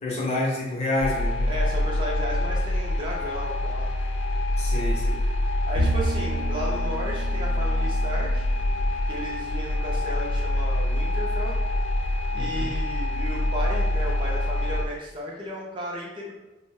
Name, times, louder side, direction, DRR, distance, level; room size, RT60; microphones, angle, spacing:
voice 1, 0.0-1.5 4.6-5.2 12.3-12.7, left 1 dB, 35° left, -3 dB, 0.6 m, -28 dB
sound 1, 1.0-14.8, left 1 dB, 90° left, 0.3 m, -26 dB
voice 2, 1.5-3.9 5.7-8.4 9.1-11.6 12.3-16.3, equal, 25° right, -4 dB, 0.4 m, -34 dB
Bowed string instrument, 5.8-9.3, right 2 dB, 90° right, 0.7 m, -31 dB
2.4 x 2.1 x 3.3 m, 1.0 s
head